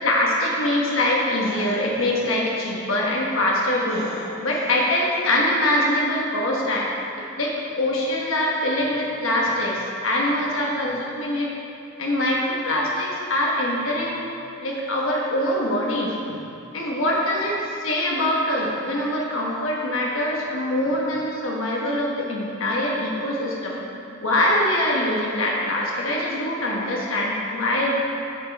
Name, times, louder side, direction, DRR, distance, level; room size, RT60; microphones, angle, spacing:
voice 1, 0.0-6.9 7.2-11.5 12.0-14.2 14.6-16.4 16.7-23.8 24.2-28.1, left 1 dB, 90° left, -3 dB, 1.3 m, -23 dB
8.2 x 5.9 x 4.6 m, 2.6 s
head